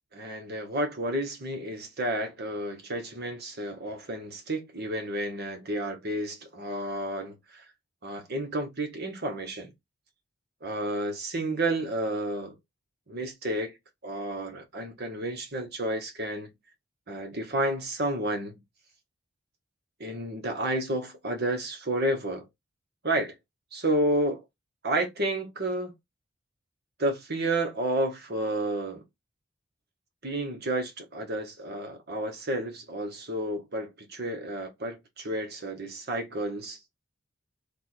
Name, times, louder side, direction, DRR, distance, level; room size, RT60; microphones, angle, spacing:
voice 1, 0.1-7.6 8.0-9.7 10.6-12.5 13.1-13.7 14.0-16.5 17.1-18.6 20.0-22.4 23.0-23.3 23.7-24.4 24.8-25.9 27.0-29.0 30.2-36.8, right 1 dB, 55° right, 1.3 m, -31 dB
3.4 x 2.6 x 4.4 m
head